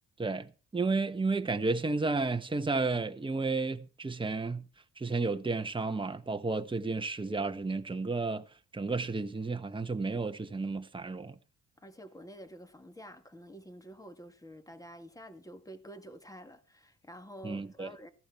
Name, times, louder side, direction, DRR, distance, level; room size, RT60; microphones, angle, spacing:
voice 1, 0.2-4.6 5.0-8.4 8.7-11.4 17.4-17.9, right 3 dB, 15° right, 1.3 m, -32 dB
voice 2, 11.8-18.1, equal, 10° left, 2.2 m, -49 dB
15.5 x 11.5 x 4.5 m
cardioid pair, 90°, 30 cm